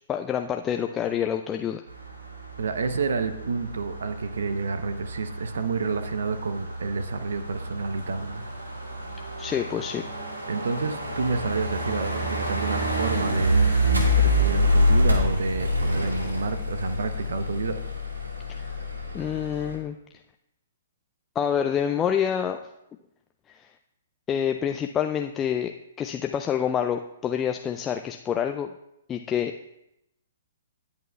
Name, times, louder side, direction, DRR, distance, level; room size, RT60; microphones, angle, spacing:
voice 1, 0.1-1.8 9.4-10.0 18.5-18.7 19.1-20.0 21.4-22.6 23.5-23.7 24.3-28.7 29.1-29.5, left 8 dB, 20° left, 5 dB, 0.4 m, -27 dB
sound 1, 1.9-19.8, left 1 dB, 80° right, 1.7 m, -27 dB
voice 2, 2.6-8.4 10.5-13.7 14.1-17.8, right 4 dB, 65° right, 10 dB, 0.7 m, -29 dB
18.0 x 8.2 x 2.3 m, 0.85 s
figure-of-eight pair, 120°, 0 cm